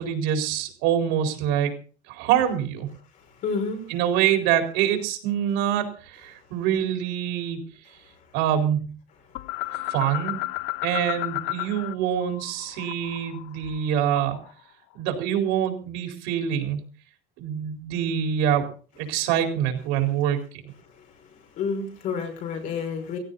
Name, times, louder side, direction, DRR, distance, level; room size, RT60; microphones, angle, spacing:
voice 1, 0.0-1.7 2.1-2.9 3.9-7.6 8.3-8.9 9.9-10.4 10.8-14.4 14.9-16.8 17.4-18.7 19.0-20.6, right 9 dB, 85° right, 4 dB, 4.4 m, -25 dB
voice 2, 3.4-3.8 21.0-21.1 21.6-23.2, left 5 dB, 45° left, 3 dB, 5.5 m, -29 dB
sound 1, 9.3-11.9 12.2-14.5, left 21 dB, 80° left, 0.8 m, -33 dB
16.5 x 16.5 x 4.1 m, 0.37 s
cardioid pair, 175°, 18 cm